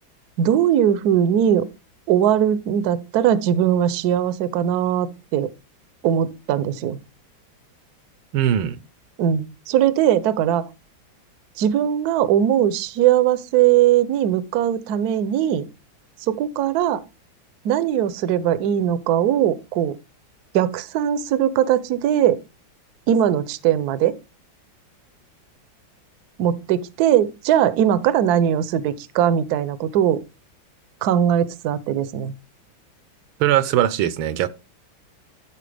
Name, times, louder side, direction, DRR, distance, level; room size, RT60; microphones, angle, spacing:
voice 1, 0.4-1.7 2.1-5.5 6.0-7.0 9.2-10.6 11.6-15.7 16.3-17.0 17.6-19.9 20.5-22.4 23.1-24.2 26.4-30.2 31.0-32.3, right 10 dB, 70° right, 1.0 m, -20 dB
voice 2, 8.3-8.8 33.4-34.5, right 11 dB, 85° right, 1.5 m, -20 dB
12.5 x 4.3 x 3.3 m
omnidirectional pair, 2.2 m